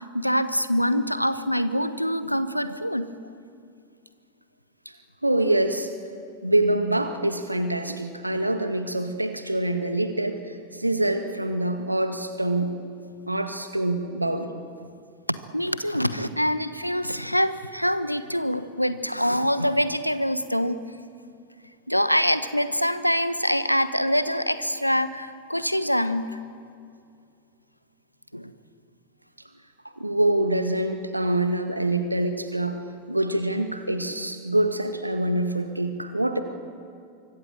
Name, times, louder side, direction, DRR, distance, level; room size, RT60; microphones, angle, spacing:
voice 1, 0.0-3.1 15.3-20.8 21.9-26.4 28.3-28.5, equal, 90° left, 13 dB, 1.1 m, -25 dB
voice 2, 5.2-5.9 6.4-10.4 10.7-12.7 13.3-14.5 30.0-32.8 33.1-36.4, right 1 dB, 85° right, 7 dB, 2.0 m, -25 dB
26.5 x 24.5 x 7.7 m, 2.4 s
figure-of-eight pair, 90°, 0 cm